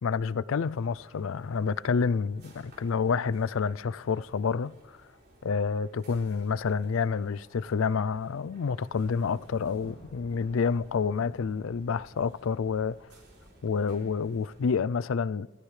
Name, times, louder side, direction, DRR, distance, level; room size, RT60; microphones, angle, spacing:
voice 1, 0.0-4.7 5.4-13.0 13.6-15.5, left 5 dB, 65° left, 0.4 m, -28 dB
sound 1, 0.7-14.7, right 1 dB, 50° right, 3.6 m, -58 dB
Thunder, 9.3-14.6, equal, 25° left, 2.1 m, -53 dB
26.5 x 13.5 x 3.3 m
head